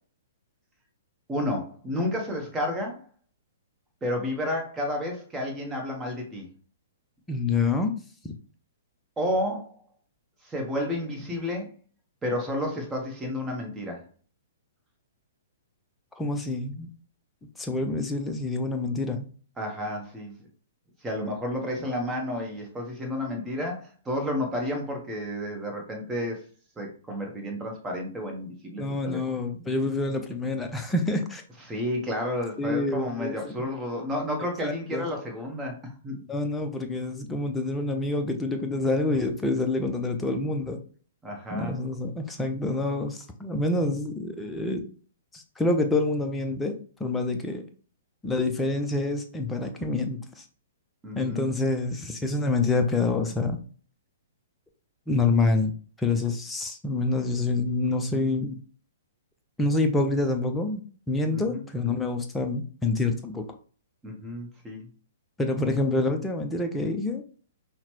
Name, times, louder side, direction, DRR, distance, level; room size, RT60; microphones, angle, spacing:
voice 1, 1.3-3.0 4.0-6.5 9.2-9.7 10.5-11.7 12.2-14.0 19.6-20.3 21.0-26.4 26.8-29.4 31.7-35.8 36.0-36.2 41.2-41.7 51.0-51.5 61.3-61.6 64.0-64.8, left 1 dB, 10° right, 1 dB, 1.1 m, -31 dB
voice 2, 7.3-7.9 8.2-8.3 16.2-16.9 17.6-19.2 28.8-31.4 32.6-33.5 34.6-35.0 36.3-40.8 41.5-44.9 45.3-47.7 48.2-50.4 51.1-53.6 55.1-55.7 56.0-58.6 59.6-60.8 61.1-63.5 65.4-67.2, left 2 dB, 10° left, 5 dB, 0.6 m, -27 dB
5.6 x 2.2 x 3.0 m, 0.42 s
figure-of-eight pair, 115°, 0 cm